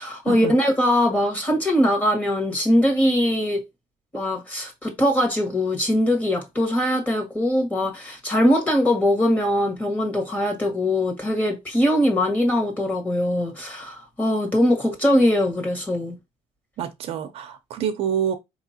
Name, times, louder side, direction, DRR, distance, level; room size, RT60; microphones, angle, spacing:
voice 1, 0.0-3.6 4.1-16.1, left 1 dB, 15° left, 1.6 m, -21 dB
voice 2, 16.8-18.3, right 8 dB, 60° right, 0.8 m, -27 dB
4.6 x 3.0 x 2.8 m
cardioid pair, 130°, 12 cm